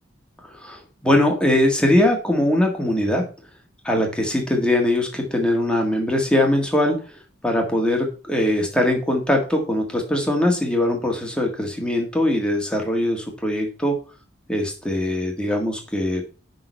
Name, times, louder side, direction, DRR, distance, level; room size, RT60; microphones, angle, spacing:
voice 1, 0.5-3.2 3.8-7.0 7.4-13.9 14.5-16.2, left 1 dB, 5° left, 1 dB, 1.7 m, -21 dB
11.0 x 3.9 x 5.3 m, 0.35 s
head